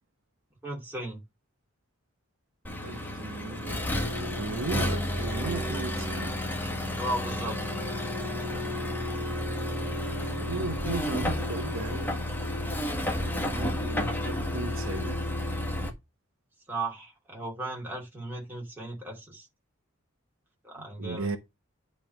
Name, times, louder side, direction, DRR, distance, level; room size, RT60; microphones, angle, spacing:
voice 1, 0.6-1.2 7.0-7.6 16.7-19.5 20.6-21.4, right 2 dB, 10° right, 2.4 m, -36 dB
Accelerating revving vroom, 2.6-15.9, left 1 dB, 10° left, 1.5 m, -31 dB
voice 2, 2.8-3.9 4.2-6.4 10.2-12.2 13.2-15.2 21.0-21.4, right 3 dB, 70° right, 0.9 m, -36 dB
9.3 x 3.3 x 5.8 m
head